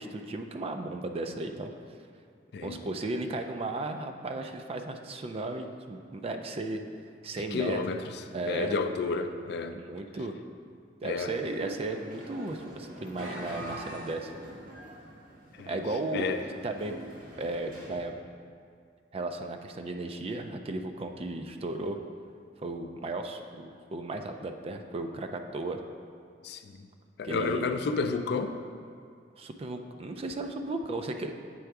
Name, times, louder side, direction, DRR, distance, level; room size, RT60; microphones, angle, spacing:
voice 1, 0.0-1.7 2.6-6.8 7.2-7.8 8.3-8.7 9.7-10.3 11.0-14.3 15.7-17.0 17.4-18.1 19.1-22.0 22.6-25.8 27.2-27.7 29.4-31.3, right 2 dB, 35° right, 6 dB, 0.4 m, -35 dB
voice 2, 7.5-8.0 8.5-9.8 11.0-11.3 15.6-15.8 16.1-16.4 26.4-26.6 27.2-28.6, left 4 dB, 65° left, 8 dB, 0.4 m, -30 dB
sound 1, 11.3-18.0, right 1 dB, 50° right, 1.3 m, -44 dB
7.7 x 3.5 x 4.7 m, 2.2 s
head